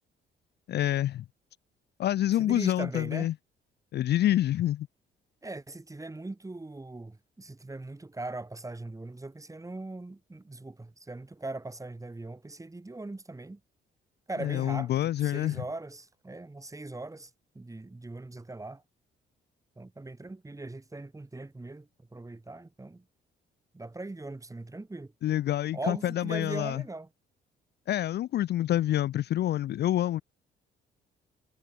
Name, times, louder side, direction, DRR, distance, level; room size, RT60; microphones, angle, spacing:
voice 1, 0.7-1.2 2.0-3.3 3.9-4.9 14.4-15.6 25.2-26.8 27.9-30.2, left 13 dB, 60° left, 0.4 m, -27 dB
voice 2, 2.4-3.3 5.4-13.6 14.3-14.9 15.2-17.3 17.6-18.8 19.8-23.0 23.7-25.1 25.7-27.1, right 2 dB, 15° right, 5.0 m, -40 dB
cardioid pair, 90°, 20 cm